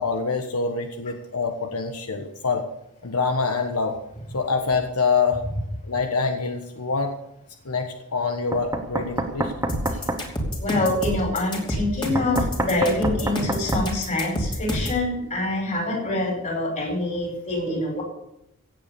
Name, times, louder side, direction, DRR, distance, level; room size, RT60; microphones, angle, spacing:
voice 1, 0.0-2.6 3.0-4.0 4.3-5.4 5.9-7.2 7.6-9.5, left 4 dB, 90° left, 5 dB, 1.4 m, -25 dB
Knock, 8.5-10.2 12.2-13.9, right 1 dB, 15° right, 1.3 m, -27 dB
sound 1, 9.7-15.0, equal, 20° left, 2.9 m, -28 dB
voice 2, 10.6-18.0, left 2 dB, 35° left, 1 dB, 5.4 m, -25 dB
16.5 x 8.2 x 6.9 m, 0.82 s
head